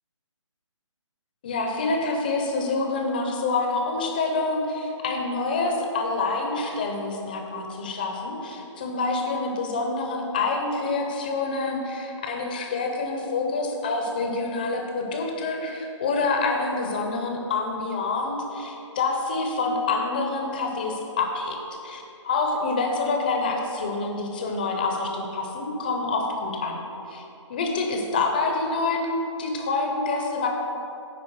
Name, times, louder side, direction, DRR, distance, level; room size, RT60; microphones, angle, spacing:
voice 1, 1.4-21.6 21.8-26.8 27.1-27.2 27.5-29.1 29.4-30.5, left 3 dB, 15° left, 2 dB, 0.6 m, -27 dB
9.9 x 4.0 x 6.2 m, 2.9 s
hypercardioid pair, 165°, 16 cm